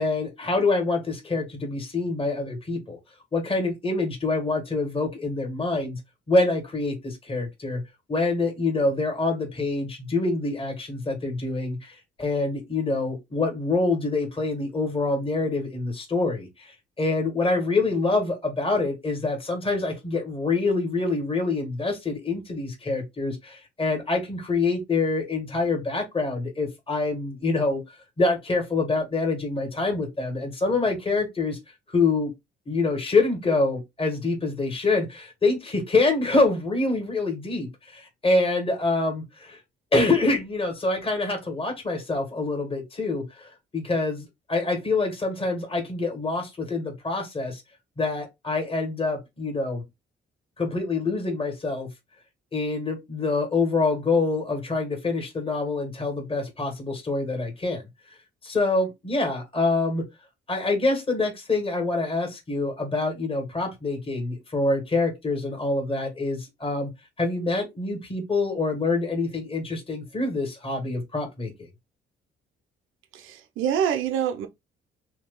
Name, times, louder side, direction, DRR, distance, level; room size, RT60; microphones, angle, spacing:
voice 1, 0.0-3.0 3.3-6.0 6.3-7.8 8.1-27.8 28.2-31.6 31.9-32.3 32.6-39.6 39.9-47.6 48.0-49.8 50.6-51.9 52.5-57.8 58.4-60.0 60.5-66.9 67.2-71.5, left 3 dB, 25° left, 1.5 m, -26 dB
voice 2, 73.1-74.5, right 9 dB, 85° right, 0.7 m, -26 dB
2.8 x 2.3 x 3.6 m
cardioid pair, 90°, 20 cm